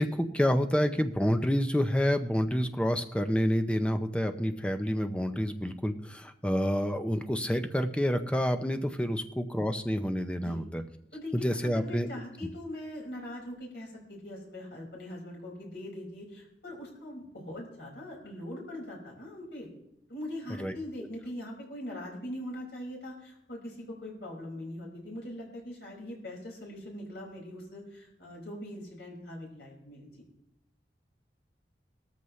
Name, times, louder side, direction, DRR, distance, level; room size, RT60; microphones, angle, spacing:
voice 1, 0.0-10.8 11.3-12.1 20.6-20.8, equal, 5° left, 7 dB, 0.6 m, -28 dB
voice 2, 11.1-19.7 20.1-30.1, left 1 dB, 70° left, -3 dB, 5.4 m, -41 dB
18.0 x 13.5 x 3.2 m, 0.82 s
head